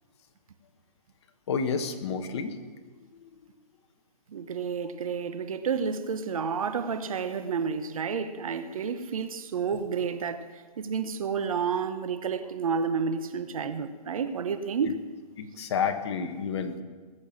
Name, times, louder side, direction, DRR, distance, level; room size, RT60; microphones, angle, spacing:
voice 1, 1.5-2.6 15.4-16.8, left 6 dB, 40° left, 1.4 m, -30 dB
voice 2, 4.3-10.5 10.8-15.0, right 6 dB, 55° right, 1.1 m, -30 dB
20.5 x 7.0 x 7.3 m
hypercardioid pair, 155°, 21 cm